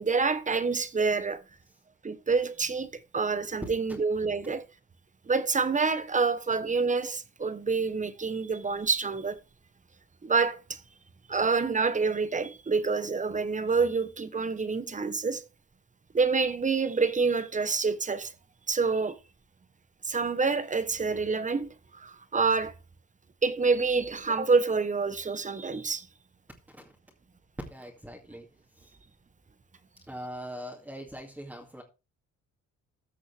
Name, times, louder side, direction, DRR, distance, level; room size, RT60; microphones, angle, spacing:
voice 1, 0.0-1.4 2.0-4.7 5.3-9.4 10.2-10.8 11.3-15.4 16.1-18.3 18.7-19.2 20.1-21.7 22.0-22.7 23.4-26.1, right 4 dB, 25° right, 1.1 m, -27 dB
voice 2, 27.7-28.5 28.8-28.9 30.1-31.8, equal, 5° right, 2.3 m, -42 dB
14.5 x 6.1 x 3.4 m
cardioid pair, 90°, 30 cm